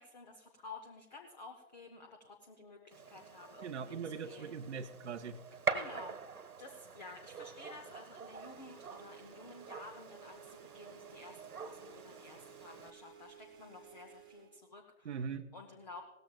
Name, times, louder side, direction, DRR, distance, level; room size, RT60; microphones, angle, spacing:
voice 1, 0.0-4.6 5.7-15.2 15.5-16.0, left 3 dB, 30° left, 4 dB, 0.8 m, -52 dB
Gunshot gunfire, 2.9-12.9, right 4 dB, 75° right, 1.3 m, -44 dB
voice 2, 3.6-5.4 15.0-15.5, right 6 dB, 50° right, 6 dB, 0.7 m, -41 dB
sound 1, 8.3-14.5, right 8 dB, 10° right, 1.2 m, -57 dB
18.0 x 14.0 x 2.4 m, 1.2 s
figure-of-eight pair, 150°, 45 cm